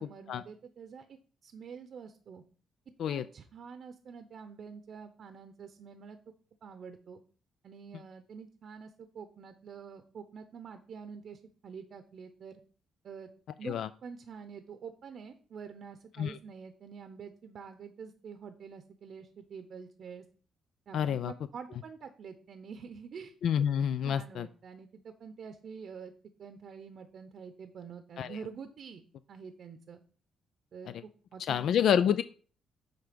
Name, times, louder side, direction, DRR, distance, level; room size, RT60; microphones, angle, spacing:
voice 1, 0.0-2.4 3.1-6.2 6.6-7.2 7.6-12.6 13.0-13.3 13.6-13.8 14.0-20.2 20.9-23.3 24.0-26.1 26.4-30.0 30.7-31.6, right 6 dB, 60° right, 9 dB, 0.7 m, -47 dB
voice 2, 20.9-21.3 23.4-24.5 28.2-28.4 31.5-32.2, left 9 dB, 70° left, 14 dB, 0.3 m, -28 dB
9.3 x 3.4 x 5.1 m, 0.43 s
cardioid pair, 90°, 0 cm